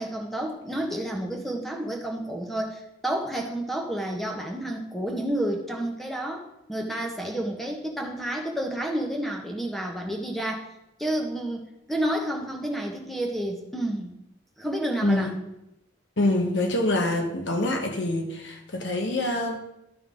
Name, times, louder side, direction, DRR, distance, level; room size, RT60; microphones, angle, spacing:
voice 1, 0.0-10.6 11.0-14.1 14.6-15.3, right 1 dB, ahead, 1 dB, 1.1 m, -30 dB
voice 2, 15.0-15.3 16.2-19.6, left 1 dB, 75° left, 4 dB, 1.3 m, -25 dB
11.5 x 5.6 x 3.8 m, 0.85 s
head